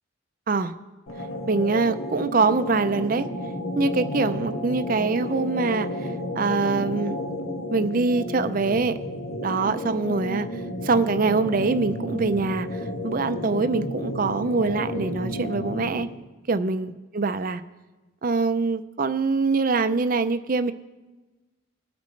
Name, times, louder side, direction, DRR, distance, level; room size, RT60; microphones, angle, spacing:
sound 1, 1.1-16.2, left 1 dB, 85° left, 1.7 m, -32 dB
voice 1, 1.5-3.3 3.8-7.2 7.7-9.0 9.4-16.1 16.5-17.6 18.2-20.7, right 4 dB, 45° right, 11 dB, 0.5 m, -24 dB
21.0 x 8.3 x 3.3 m, 1.2 s
head